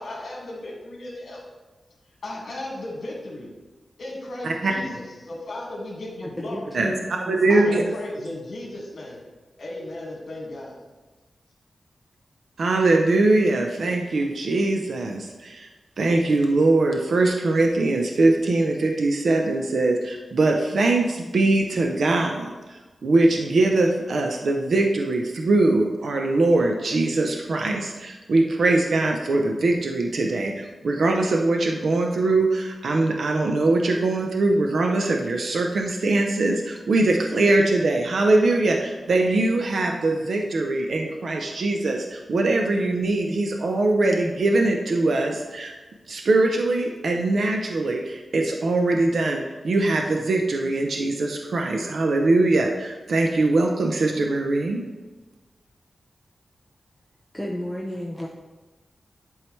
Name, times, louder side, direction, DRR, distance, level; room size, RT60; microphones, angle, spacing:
voice 1, 0.0-1.4 2.2-3.5 4.0-6.7 7.5-9.2 9.6-10.8, left 1 dB, 65° left, -2 dB, 2.0 m, -35 dB
voice 2, 6.2-7.9 57.3-58.3, equal, ahead, -2 dB, 0.6 m, -33 dB
voice 3, 6.7-7.8 12.6-15.7 16.0-45.7 46.1-54.8, right 2 dB, 65° right, 2 dB, 0.6 m, -22 dB
10.5 x 4.7 x 3.2 m, 1.2 s
wide cardioid pair, 165°, 0 cm